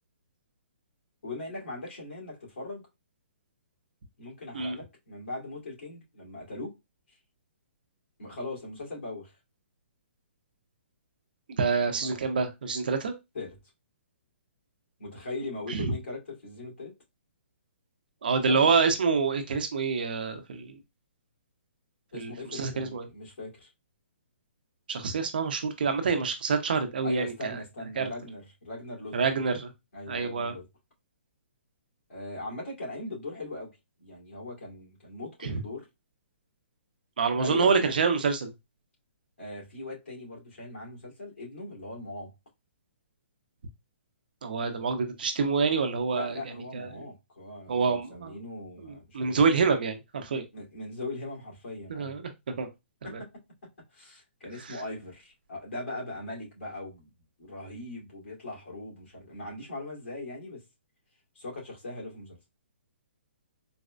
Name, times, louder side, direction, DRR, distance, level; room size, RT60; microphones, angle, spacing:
voice 1, 1.2-2.9 4.2-6.8 8.2-9.3 11.7-12.3 13.3-13.6 15.0-16.9 18.5-18.7 22.1-23.7 27.0-29.2 29.9-30.7 32.1-35.9 37.3-37.9 39.4-42.3 46.1-49.4 50.5-52.2 53.0-53.3 53.9-57.1 57.4-60.6 61.4-62.4, left 2 dB, 85° left, 2.2 m, -40 dB
voice 2, 11.5-13.1 15.7-15.9 18.2-20.8 22.1-23.1 24.9-27.5 28.0-28.1 29.1-29.7 30.1-30.5 35.4-35.6 37.2-38.5 44.4-46.4 46.7-47.0 47.7-48.3 48.8-50.5 51.9-52.2 52.6-52.7 54.7-54.8, right 5 dB, 45° right, 0.6 m, -27 dB
4.1 x 2.1 x 2.5 m
hypercardioid pair, 180°, 7 cm